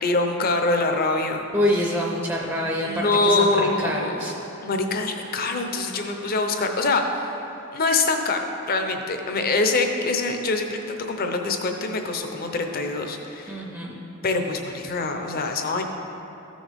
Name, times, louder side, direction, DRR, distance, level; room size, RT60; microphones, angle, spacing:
voice 1, 0.0-1.4 2.8-4.2 4.6-7.3 7.7-13.6 14.2-15.8, left 3 dB, 45° left, 4 dB, 0.7 m, -24 dB
voice 2, 1.5-4.3 13.5-14.0, equal, 15° right, -2 dB, 0.6 m, -26 dB
14.0 x 6.3 x 3.5 m, 3.0 s
head